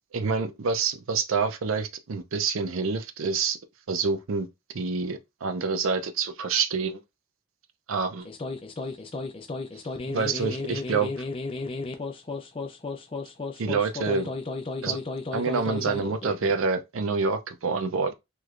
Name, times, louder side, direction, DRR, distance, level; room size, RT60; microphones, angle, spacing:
voice 1, 0.1-3.6 3.9-4.5 4.7-7.0 7.9-8.3 10.1-11.1 13.6-14.3 14.8-15.0 15.3-18.1, right 5 dB, 65° right, 0.5 m, -27 dB
sound 1, 8.2-16.6, left 3 dB, 25° left, 0.4 m, -34 dB
3.2 x 3.1 x 2.4 m
head